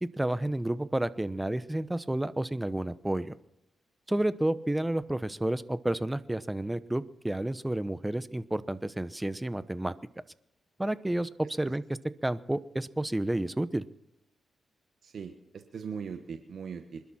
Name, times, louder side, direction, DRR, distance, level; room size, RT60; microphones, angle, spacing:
voice 1, 0.0-3.3 4.1-9.9 10.8-13.8, right 1 dB, 10° right, 14 dB, 0.9 m, -31 dB
voice 2, 15.0-17.0, right 6 dB, 70° right, 6 dB, 1.4 m, -40 dB
27.0 x 12.0 x 4.3 m, 0.86 s
cardioid pair, 75°, 0 cm